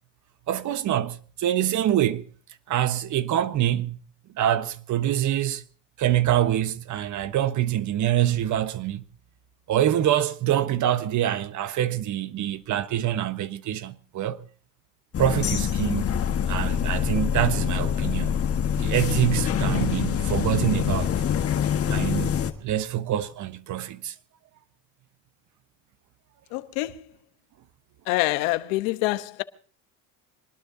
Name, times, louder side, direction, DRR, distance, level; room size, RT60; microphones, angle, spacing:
voice 1, 0.5-2.2 2.7-4.0 4.4-5.6 6.0-9.0 9.7-14.4 15.2-16.0 16.5-18.4 18.8-21.1 21.9-22.4 22.6-24.1, right 12 dB, 45° right, 1.3 m, -25 dB
sound 1, 15.1-22.5, left 8 dB, 35° left, 1.6 m, -25 dB
voice 2, 26.5-27.0 28.1-29.4, left 19 dB, 90° left, 1.1 m, -26 dB
25.0 x 19.5 x 2.8 m
cardioid pair, 120°, 39 cm